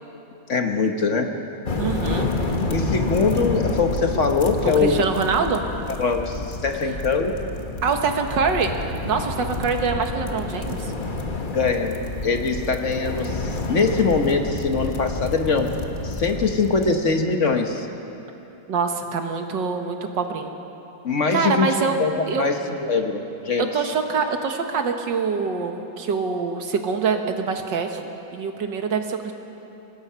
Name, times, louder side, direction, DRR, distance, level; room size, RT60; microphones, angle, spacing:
voice 1, 0.5-1.3 2.7-5.0 6.0-7.3 11.5-11.9 12.2-15.7 16.0-17.9 21.0-21.7 22.0-22.1 22.4-22.5 22.9-23.7, left 4 dB, 45° left, 4 dB, 1.4 m, -22 dB
sound 1, 1.7-16.9, left 3 dB, 30° left, 1.4 m, -29 dB
voice 2, 1.8-2.3 4.6-5.6 7.8-10.9 18.7-20.6 21.3-22.0 22.3-22.5 23.6-29.3, right 5 dB, 85° right, 5 dB, 2.1 m, -25 dB
24.5 x 19.5 x 5.7 m, 2.9 s
omnidirectional pair, 1.9 m